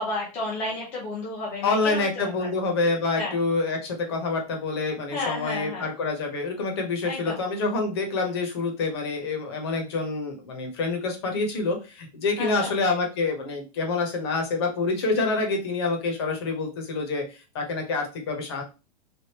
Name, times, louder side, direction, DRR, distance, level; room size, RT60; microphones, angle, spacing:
voice 1, 0.0-2.5 3.2-3.4 5.1-5.9 7.0-7.4 12.4-12.7, left 2 dB, 10° left, -4 dB, 0.3 m, -32 dB
voice 2, 1.6-18.6, left 3 dB, 40° left, 3 dB, 0.9 m, -27 dB
3.4 x 2.5 x 2.9 m, 0.30 s
supercardioid pair, 180°, 21 cm